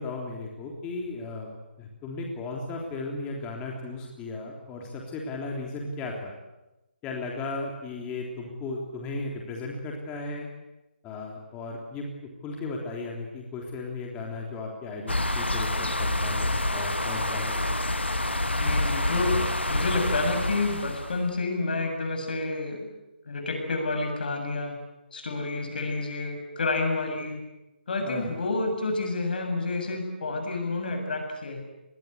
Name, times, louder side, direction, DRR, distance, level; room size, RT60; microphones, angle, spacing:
voice 1, 0.0-6.3 7.0-10.5 11.0-12.1 12.4-17.7 28.0-28.3, left 3 dB, 15° left, 0 dB, 3.4 m, -36 dB
sound 1, 15.1-21.2, left 1 dB, 90° left, 2.1 m, -27 dB
voice 2, 18.6-19.4 19.7-22.9 23.3-24.8 25.1-27.4 27.9-31.6, left 3 dB, 55° left, 5 dB, 7.7 m, -29 dB
29.0 x 21.5 x 8.3 m, 0.99 s
figure-of-eight pair, 145°, 6 cm